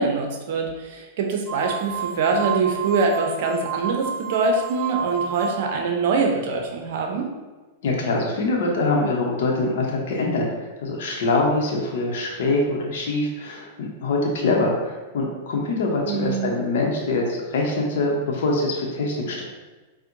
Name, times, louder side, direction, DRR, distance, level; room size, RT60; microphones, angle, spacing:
voice 1, 0.0-7.3 16.1-16.5, right 4 dB, 60° right, 2 dB, 0.6 m, -24 dB
sound 1, 1.5-5.9, right 8 dB, 15° right, 0.5 m, -31 dB
voice 2, 7.8-19.4, left 2 dB, 70° left, -1 dB, 0.7 m, -24 dB
4.2 x 2.1 x 2.6 m, 1.2 s
hypercardioid pair, 110°, 0 cm